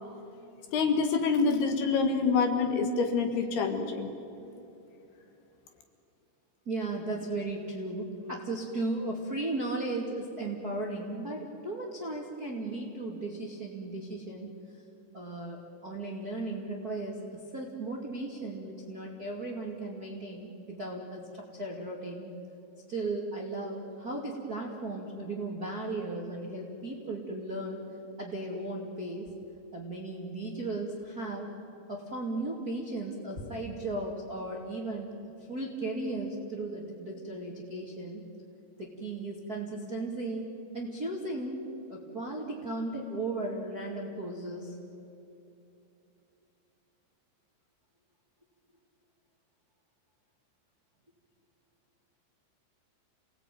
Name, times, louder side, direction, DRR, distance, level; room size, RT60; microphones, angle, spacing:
voice 1, 0.7-4.1, left 4 dB, 65° left, 5 dB, 3.4 m, -26 dB
voice 2, 6.7-14.5 15.1-22.3 22.9-27.8 28.2-29.3 29.7-31.5 31.9-35.1 35.5-38.2 38.8-40.5 40.7-44.8, right 2 dB, 30° right, -1 dB, 1.9 m, -36 dB
28.5 x 19.0 x 9.3 m, 2.8 s
omnidirectional pair, 5.3 m